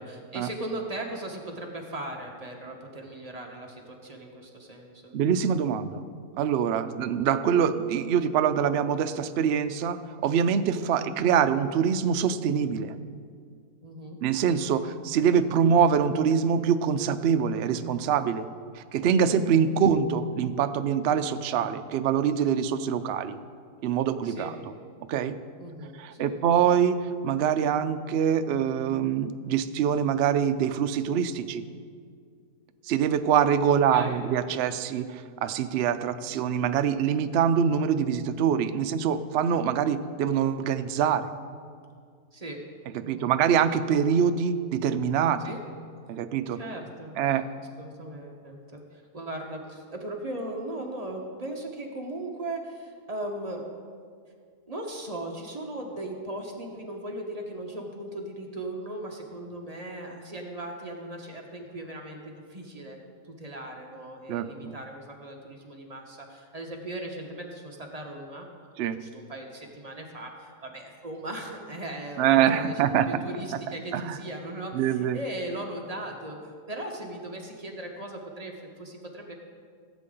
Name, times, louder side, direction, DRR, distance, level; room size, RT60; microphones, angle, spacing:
voice 1, 0.0-5.1 11.0-11.1 13.8-14.2 24.2-24.5 25.6-26.3 33.9-34.2 42.3-42.6 43.0-43.3 45.4-45.6 46.5-47.2 47.6-53.6 54.7-68.5 68.8-76.4 76.7-79.4, right 1 dB, 25° right, 1 dB, 1.1 m, -38 dB
voice 2, 5.1-6.0 6.4-12.9 14.2-18.5 18.8-23.4 23.8-24.5 25.1-25.4 26.0-31.6 32.9-41.3 42.9-45.4 46.1-46.6 47.2-47.5 64.3-64.7 68.8-69.0 72.2-73.1 73.9-74.2 74.7-75.2, right 8 dB, 85° right, 10 dB, 0.5 m, -24 dB
16.5 x 8.1 x 3.8 m, 2.1 s
omnidirectional pair, 1.7 m